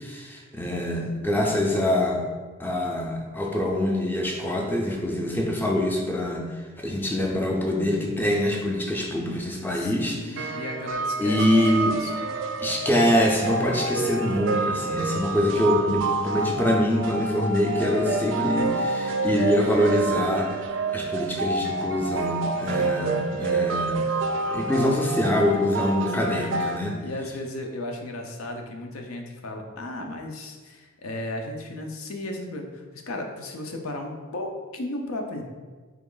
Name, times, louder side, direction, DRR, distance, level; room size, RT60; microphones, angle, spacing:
voice 1, 0.0-2.2 2.6-6.5 6.8-10.6 11.2-12.0 12.6-20.6 20.9-24.1 24.5-27.0, left 1 dB, 10° left, 0 dB, 0.4 m, -24 dB
voice 2, 7.0-7.4 9.7-12.3 26.2-26.5 27.0-35.4, left 1 dB, 85° left, 3 dB, 0.6 m, -35 dB
sound 1, 10.4-26.8, right 3 dB, 60° right, 0.3 m, -28 dB
3.5 x 3.0 x 3.8 m, 1.4 s
head